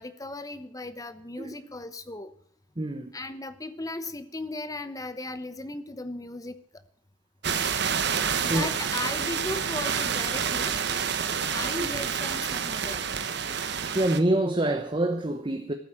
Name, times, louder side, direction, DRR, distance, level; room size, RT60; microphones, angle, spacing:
voice 1, 0.0-2.3 3.1-6.8 8.4-10.8 11.5-13.0, left 2 dB, 20° left, 1.0 m, -37 dB
voice 2, 2.8-3.2 8.0-8.7 11.8-11.9 13.9-15.7, right 1 dB, 25° right, 1.0 m, -27 dB
sound 1, 7.4-14.2, right 7 dB, 60° right, 1.2 m, -28 dB
14.0 x 8.1 x 8.8 m
head